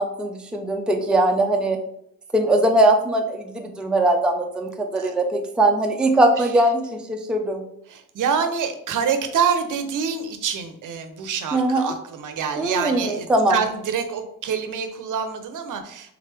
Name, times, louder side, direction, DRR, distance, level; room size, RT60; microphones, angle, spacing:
voice 1, 0.0-1.8 2.3-6.8 7.1-7.6 11.5-11.9 12.6-13.6, right 1 dB, 5° right, 2 dB, 0.4 m, -20 dB
voice 2, 7.9-16.2, right 6 dB, 60° right, 8 dB, 0.6 m, -26 dB
3.6 x 3.2 x 3.3 m, 0.73 s
cardioid pair, 95°, 36 cm